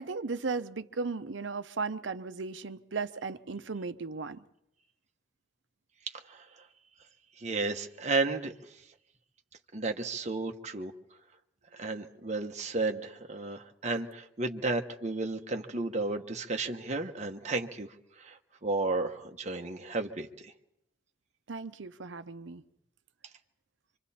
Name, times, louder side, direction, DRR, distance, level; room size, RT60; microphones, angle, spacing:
voice 1, 0.0-4.4 21.5-22.6, right 4 dB, 85° right, 0.8 m, -36 dB
voice 2, 6.1-6.5 7.4-8.8 9.7-10.9 11.7-17.9 18.2-20.5, right 3 dB, 40° right, 1.1 m, -33 dB
26.0 x 25.5 x 4.3 m
head